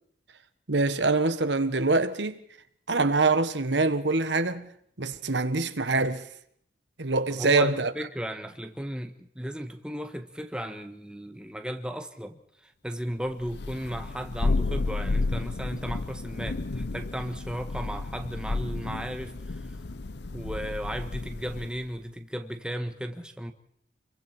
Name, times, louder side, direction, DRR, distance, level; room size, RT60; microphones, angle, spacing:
voice 1, 0.7-2.4 2.9-4.7 5.0-6.3 7.0-7.9, right 3 dB, 80° right, 1.5 m, -24 dB
voice 2, 7.4-19.7 20.3-23.5, equal, 5° right, 1.5 m, -35 dB
Thunder, 13.4-21.8, left 3 dB, 70° left, 0.8 m, -32 dB
28.5 x 23.0 x 4.5 m
head